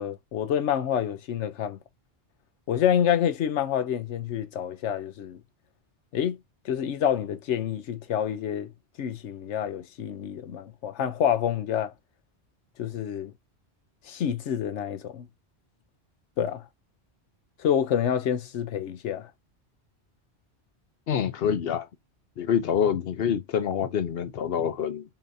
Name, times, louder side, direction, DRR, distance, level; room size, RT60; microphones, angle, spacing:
voice 1, 0.0-1.8 2.7-5.4 6.1-6.4 6.6-8.7 9.0-11.9 12.8-13.3 14.1-15.3 16.4-16.6 17.6-19.3, left 9 dB, 85° left, 1.0 m, -27 dB
voice 2, 21.1-21.9 22.4-25.0, left 8 dB, 65° left, 0.8 m, -26 dB
5.6 x 2.6 x 2.6 m
omnidirectional pair, 1.2 m